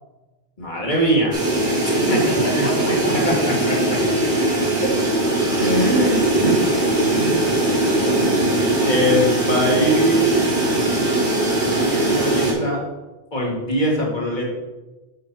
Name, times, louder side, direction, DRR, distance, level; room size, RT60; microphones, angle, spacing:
voice 1, 0.6-1.3 1.9-2.6 3.1-3.7 4.8-4.9 5.6-6.6 7.1-7.6 8.8-10.6 11.8-12.8 13.3-14.5, equal, 45° left, -3 dB, 2.0 m, -22 dB
water heater, 1.3-12.5, right 1 dB, 75° right, 2.5 m, -20 dB
voice 2, 1.9-4.5 5.3-5.6, equal, 15° left, -2 dB, 1.1 m, -33 dB
6.5 x 5.4 x 5.5 m, 1.1 s
omnidirectional pair, 1.1 m